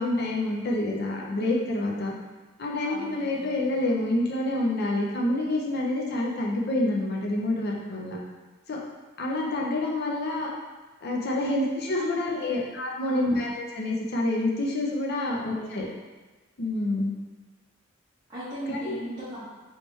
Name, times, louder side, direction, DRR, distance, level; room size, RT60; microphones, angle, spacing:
voice 1, 0.0-2.1 2.6-8.2 8.7-8.8 9.2-10.5 11.0-15.9 16.6-17.1 18.7-18.9, left 1 dB, 50° left, -2 dB, 0.6 m, -27 dB
voice 2, 2.8-3.6 11.9-12.6 13.0-13.4 15.3-15.9 18.3-19.5, right 1 dB, 20° right, -13 dB, 0.9 m, -39 dB
3.2 x 3.1 x 3.1 m, 1.3 s
head